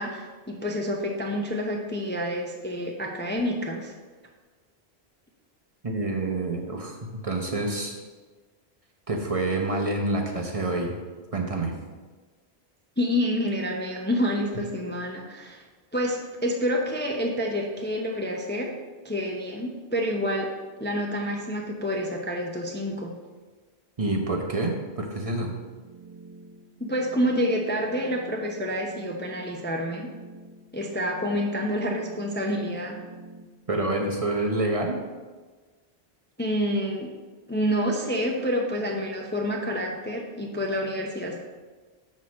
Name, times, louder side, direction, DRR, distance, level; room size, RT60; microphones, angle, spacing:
voice 1, 0.0-3.9 13.0-15.6 15.9-18.7 19.0-20.5 20.8-23.1 26.8-30.1 30.7-33.0 36.4-37.1 37.5-41.4, equal, 15° left, 1 dB, 0.5 m, -28 dB
voice 2, 5.8-8.0 9.1-10.9 11.3-11.7 24.0-25.5 33.7-35.0, right 2 dB, 35° right, 1 dB, 0.8 m, -27 dB
sound 1, 25.7-33.5, right 3 dB, 70° right, 0.9 m, -48 dB
6.1 x 4.3 x 6.2 m, 1.3 s
omnidirectional pair, 1.1 m